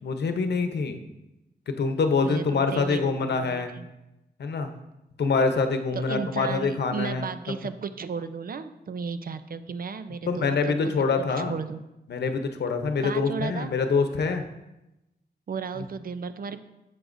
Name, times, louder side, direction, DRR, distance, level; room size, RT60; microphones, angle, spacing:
voice 1, 0.0-1.0 1.7-3.7 4.4-4.7 5.2-7.3 10.2-11.5 12.1-14.4 15.8-15.9, left 4 dB, 85° left, 7 dB, 0.8 m, -25 dB
voice 2, 2.2-3.9 5.9-10.9 11.4-11.8 13.0-13.7 15.5-16.6, right 5 dB, 60° right, 11 dB, 0.5 m, -34 dB
11.0 x 7.7 x 2.6 m, 0.94 s
wide cardioid pair, 90°, 17 cm